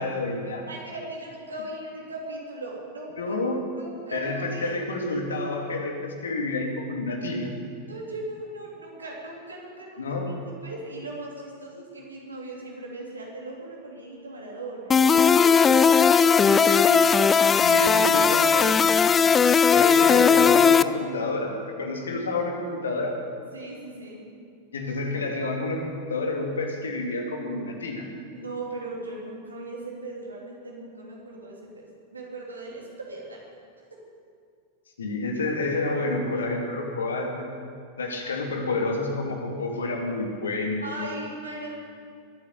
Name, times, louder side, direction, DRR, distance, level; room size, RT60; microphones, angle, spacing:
voice 1, 0.0-0.7 3.2-3.6 4.1-7.5 10.0-10.3 16.5-17.0 17.3-18.7 19.7-23.1 24.7-28.1 35.0-37.5 38.0-40.9, left 2 dB, 70° left, 2 dB, 2.3 m, -29 dB
voice 2, 0.7-3.4 3.8-4.8 7.9-10.3 10.6-16.6 17.6-17.9 18.2-18.9 23.5-24.2 28.3-33.5 36.3-36.4 40.8-41.7, right 2 dB, 75° right, -2 dB, 3.5 m, -38 dB
sound 1, 14.9-20.8, left 6 dB, 20° left, 0.4 m, -18 dB
22.0 x 9.3 x 6.8 m, 2.3 s
figure-of-eight pair, 90°, 0 cm